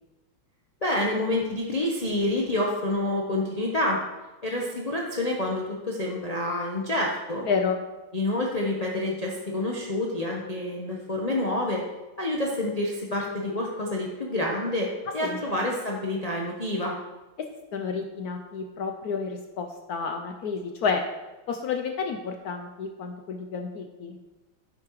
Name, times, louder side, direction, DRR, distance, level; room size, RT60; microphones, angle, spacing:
voice 1, 0.8-4.0 4.4-7.5 8.1-11.8 12.2-17.0, left 1 dB, 55° left, -2 dB, 0.4 m, -28 dB
voice 2, 7.4-7.8 15.2-15.4 17.7-21.0 21.5-24.2, left 5 dB, 75° left, 5 dB, 0.8 m, -30 dB
10.5 x 8.5 x 3.1 m, 1.1 s
omnidirectional pair, 2.3 m